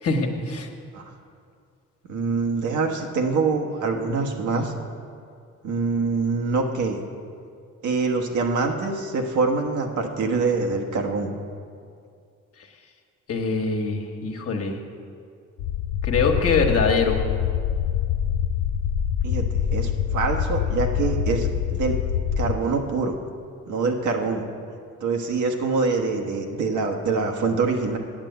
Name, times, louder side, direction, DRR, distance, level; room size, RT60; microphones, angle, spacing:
voice 1, 0.0-0.7 13.3-14.8 16.0-17.2, left 4 dB, 50° left, 3 dB, 1.4 m, -23 dB
voice 2, 2.1-4.7 5.6-7.0 7.8-11.3 19.2-22.0 22.4-23.2 23.7-24.5 25.0-28.0, right 4 dB, 75° right, 2 dB, 1.3 m, -25 dB
sound 1, 15.6-22.6, left 9 dB, 70° left, 0.5 m, -25 dB
8.8 x 8.3 x 7.9 m, 2.3 s
cardioid pair, 90°, 30 cm